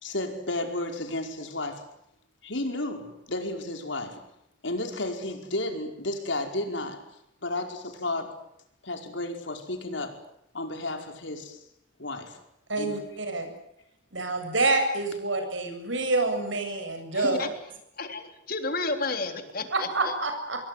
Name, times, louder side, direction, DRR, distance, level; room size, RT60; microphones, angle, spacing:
voice 1, 0.0-1.9 2.4-4.2 4.6-7.1 7.4-8.4 8.8-10.2 10.5-11.6 12.0-12.4 12.8-13.2, left 2 dB, 75° left, 5.1 m, -33 dB
voice 2, 12.7-13.5 14.1-17.4 19.7-20.6, right 2 dB, 80° right, 7.8 m, -27 dB
voice 3, 17.1-17.6 18.0-20.1, left 3 dB, 50° left, 3.5 m, -32 dB
27.0 x 22.0 x 9.6 m
head